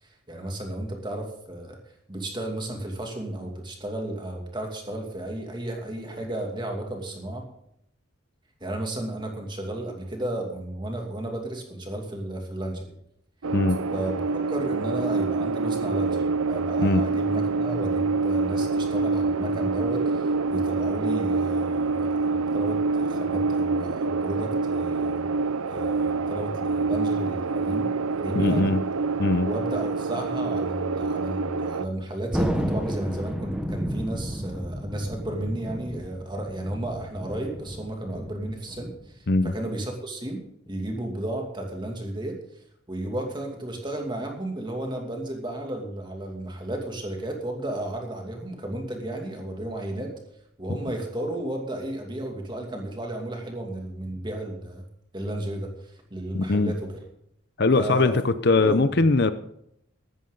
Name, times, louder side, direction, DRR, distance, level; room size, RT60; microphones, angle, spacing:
voice 1, 0.0-1.8 2.1-7.4 8.6-12.9 13.9-14.2 14.5-25.2 25.7-27.9 28.2-28.7 29.4-42.4 42.9-50.1 50.6-54.8 55.1-57.0 57.7-58.1 58.6-59.1, right 1 dB, 20° right, 2 dB, 2.6 m, -33 dB
sound 1, 13.4-31.9, right 4 dB, 85° right, 0.7 m, -26 dB
voice 2, 28.3-28.8 29.2-29.5 39.3-39.5 56.3-56.7 57.6-59.3, left 3 dB, 50° left, 12 dB, 0.7 m, -21 dB
Thunder, 32.3-39.2, equal, 5° right, 1.1 m, -32 dB
14.5 x 13.0 x 4.0 m, 0.75 s
head